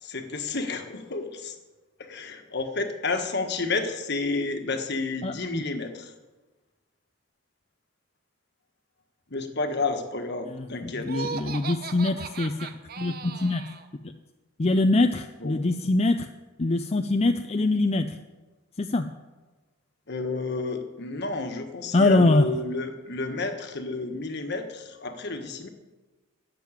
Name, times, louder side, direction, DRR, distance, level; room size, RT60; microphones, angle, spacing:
voice 1, 0.0-1.6 2.0-6.1 9.3-11.2 15.4-15.5 20.1-25.7, left 3 dB, 55° left, 6 dB, 1.4 m, -31 dB
voice 2, 5.2-5.6 10.5-12.5 13.0-13.6 14.6-16.3 16.6-18.2 18.8-19.1 21.9-22.5, left 2 dB, 30° left, 6 dB, 0.5 m, -23 dB
Laughter, 11.0-13.9, right 6 dB, 45° right, 0.8 m, -37 dB
12.0 x 7.6 x 9.0 m, 1.2 s
head